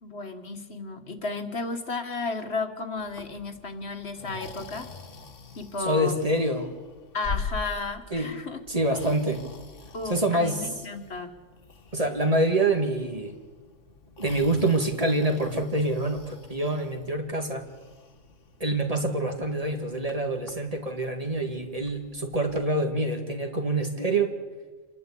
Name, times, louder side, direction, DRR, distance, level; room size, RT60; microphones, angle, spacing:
voice 1, 0.0-4.9 5.6-6.1 7.1-8.6 9.9-11.3, left 3 dB, 55° left, 6 dB, 1.7 m, -33 dB
Breathing, 3.0-22.7, left 4 dB, 70° left, 1.8 m, -44 dB
voice 2, 5.8-6.7 8.1-8.3 8.7-9.5 10.1-10.6 11.9-13.3 14.2-17.7 18.6-24.3, right 1 dB, 30° right, 4 dB, 1.9 m, -26 dB
27.5 x 11.5 x 8.3 m, 1.3 s
omnidirectional pair, 1.3 m